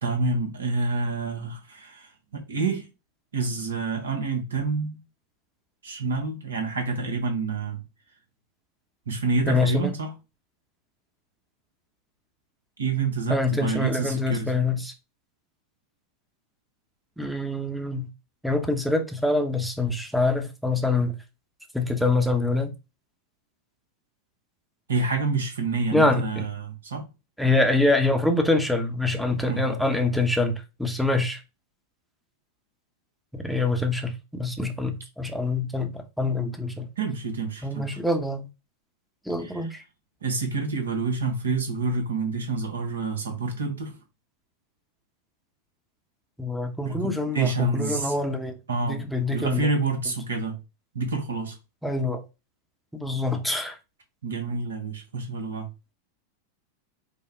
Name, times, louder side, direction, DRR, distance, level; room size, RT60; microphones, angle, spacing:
voice 1, 0.0-2.9 3.3-5.0 5.8-7.8 9.1-10.1 12.8-14.5 24.9-27.1 29.5-29.8 37.0-38.0 39.4-39.7 40.2-44.0 46.8-47.1 47.3-48.1 48.7-50.6 50.9-51.5 54.2-55.7, right 4 dB, 70° right, 1.2 m, -28 dB
voice 2, 9.5-9.9 13.3-14.9 17.2-18.1 18.4-21.1 21.7-22.7 25.9-26.5 27.4-31.4 33.3-36.9 37.6-38.5 39.3-39.8 46.4-48.6 48.8-49.7 51.8-52.2 52.9-53.8, left 2 dB, ahead, 0.9 m, -25 dB
5.0 x 2.3 x 3.5 m
figure-of-eight pair, 90°, 0 cm